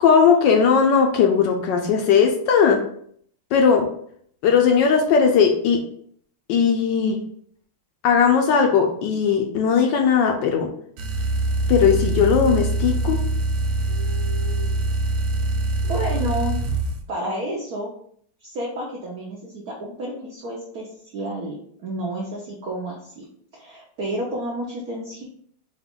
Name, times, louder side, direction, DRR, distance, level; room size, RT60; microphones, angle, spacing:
voice 1, 0.0-2.8 3.5-3.9 4.4-5.8 6.5-7.2 8.0-10.7 11.7-13.2, left 6 dB, 70° left, 3 dB, 1.1 m, -18 dB
sound 1, 11.0-17.0, right 2 dB, 85° right, 1.5 m, -24 dB
voice 2, 13.9-14.7 15.8-16.6 17.1-17.9 18.4-20.9 21.1-23.3 23.5-25.2, right 1 dB, 65° right, -4 dB, 0.9 m, -30 dB
5.0 x 2.4 x 3.6 m, 0.62 s
omnidirectional pair, 2.3 m